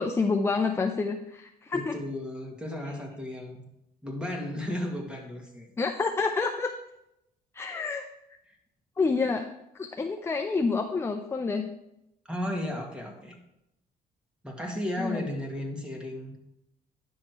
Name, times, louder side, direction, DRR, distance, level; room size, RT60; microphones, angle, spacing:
voice 1, 0.0-2.0 5.8-6.7 7.5-8.1 9.0-9.5 9.7-11.7 15.0-15.3, left 4 dB, 15° left, 5 dB, 0.5 m, -28 dB
voice 2, 1.7-3.6 4.0-5.7 8.5-8.6 12.3-13.4 14.4-16.4, left 1 dB, 5° right, 1 dB, 1.9 m, -34 dB
10.0 x 6.3 x 4.6 m, 0.84 s
cardioid pair, 125°, 16 cm